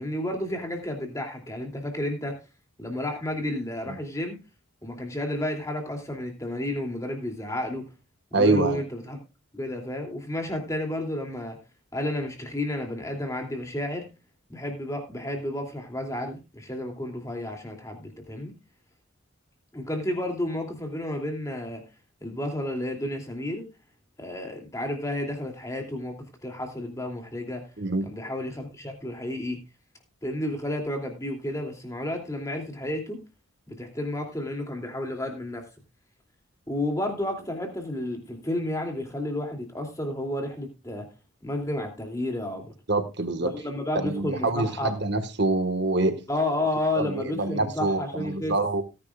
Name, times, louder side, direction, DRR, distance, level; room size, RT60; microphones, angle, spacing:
voice 1, 0.0-2.4 2.8-4.4 4.8-7.8 8.3-9.2 9.5-11.6 11.9-14.1 14.5-18.5 19.7-21.8 22.2-23.6 24.2-26.2 26.4-27.6 28.0-29.6 30.2-33.2 33.7-35.7 36.7-41.1 41.4-42.7 43.4-44.9 46.3-48.5, left 1 dB, 15° left, 2.8 m, -31 dB
voice 2, 8.3-8.8 27.8-28.1 42.9-43.5 44.0-46.2 47.0-48.8, right 2 dB, 55° right, 1.6 m, -25 dB
18.5 x 10.5 x 2.4 m
head